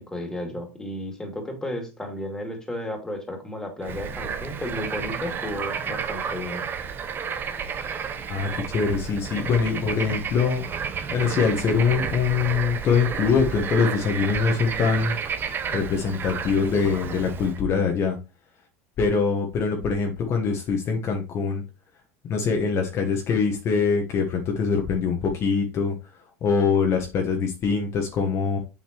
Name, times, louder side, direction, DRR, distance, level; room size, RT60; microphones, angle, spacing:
voice 1, 0.0-6.6, left 1 dB, 10° left, 3 dB, 2.5 m, -33 dB
Bird / Frog, 3.8-17.6, right 7 dB, 30° right, 0.9 m, -31 dB
voice 2, 8.3-15.1 15.7-18.2 19.0-21.6 22.2-25.9 26.4-28.6, left 5 dB, 40° left, 2 dB, 1.3 m, -23 dB
7.5 x 5.7 x 3.1 m, 0.30 s
supercardioid pair, 120°, 7 cm